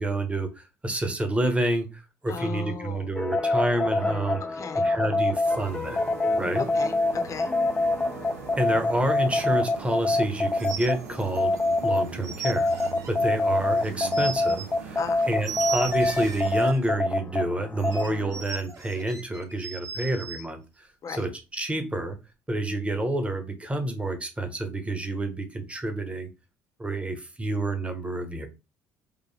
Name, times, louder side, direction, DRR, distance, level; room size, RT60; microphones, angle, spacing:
voice 1, 0.0-6.0 6.4-6.7 8.6-11.6 11.8-12.7 13.1-15.0 15.3-20.6 21.1-22.2 22.5-26.3 26.8-28.5, right 1 dB, 15° right, 7 dB, 1.1 m, -28 dB
voice 2, 2.3-3.1 4.6-4.8 6.7-7.5 15.0-15.3 21.0-21.3, left 5 dB, 40° left, 8 dB, 0.8 m, -36 dB
sound 1, 3.2-12.0 12.4-18.4, left 2 dB, 15° left, 0.4 m, -26 dB
sound 2, 5.4-16.7, right 6 dB, 85° right, 0.6 m, -41 dB
sound 3, 10.6-11.7 12.0-13.1 13.8-14.7 15.4-16.9 17.8-20.4, right 6 dB, 45° right, 1.5 m, -37 dB
5.3 x 2.1 x 3.3 m, 0.28 s
hypercardioid pair, 60°, 8 cm